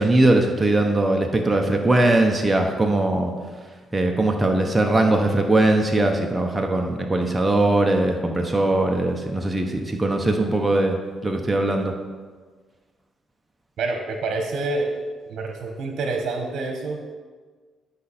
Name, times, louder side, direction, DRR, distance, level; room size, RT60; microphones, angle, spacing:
voice 1, 0.0-3.3 3.9-11.0 11.2-11.9, right 2 dB, 15° right, 2 dB, 0.9 m, -20 dB
voice 2, 13.8-14.9 15.3-17.1, right 3 dB, 65° right, 3 dB, 1.1 m, -27 dB
11.5 x 5.4 x 4.2 m, 1.5 s
cardioid pair, 90°, 0 cm